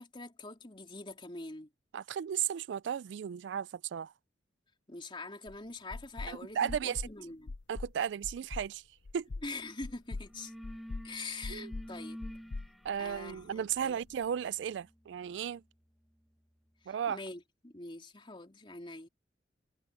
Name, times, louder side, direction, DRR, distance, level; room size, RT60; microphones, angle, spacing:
voice 1, 0.0-1.7 4.9-7.5 9.4-10.5 11.0-12.2 13.0-14.0 16.8-19.1, left 3 dB, 30° left, 3.3 m, -44 dB
voice 2, 1.9-4.1 6.3-7.0 7.7-8.8 9.1-9.3 11.5-11.7 12.8-15.6 16.9-17.2, right 8 dB, 80° right, 0.3 m, -35 dB
sound 1, 5.5-5.6 5.9-6.3 6.7-7.1 7.5-7.9 8.2-8.7 9.1-9.5 9.8-10.3 10.6-11.1 11.4-11.9 12.2-13.4, left 3 dB, 85° left, 0.6 m, -41 dB
sound 2, 9.6-9.8 10.1-16.7, equal, ahead, 0.9 m, -50 dB
head